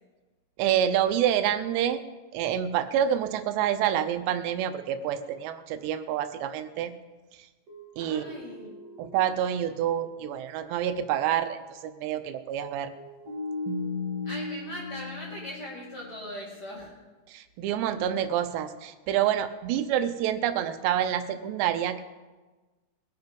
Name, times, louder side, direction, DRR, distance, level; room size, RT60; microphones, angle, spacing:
voice 1, 0.6-2.0 2.3-6.9 8.0-8.3 9.0-12.9 17.3-22.0, right 10 dB, 90° right, 9 dB, 3.0 m, -27 dB
sound 1, 7.7-10.2 10.5-10.6 12.9-16.5, left 3 dB, 40° right, 3.0 m, -37 dB
voice 2, 8.0-8.7 14.2-17.0, equal, 25° left, -5 dB, 4.2 m, -40 dB
21.5 x 8.1 x 5.3 m, 1.2 s
omnidirectional pair, 4.9 m